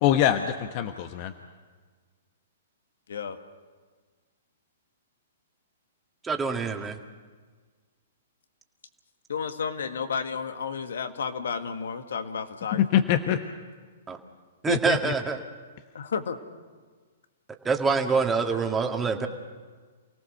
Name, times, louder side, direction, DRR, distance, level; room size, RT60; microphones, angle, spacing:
voice 1, 0.0-1.3 12.7-13.4 14.7-15.1, left 10 dB, 45° left, 7 dB, 1.1 m, -24 dB
voice 2, 6.2-7.0 14.1-14.2 14.6-15.4 17.6-19.3, right 5 dB, 15° right, 3 dB, 2.0 m, -25 dB
voice 3, 9.3-12.8 15.9-16.4, left 6 dB, 70° left, 8 dB, 1.7 m, -32 dB
28.5 x 18.0 x 6.6 m, 1.5 s
hypercardioid pair, 115°, 0 cm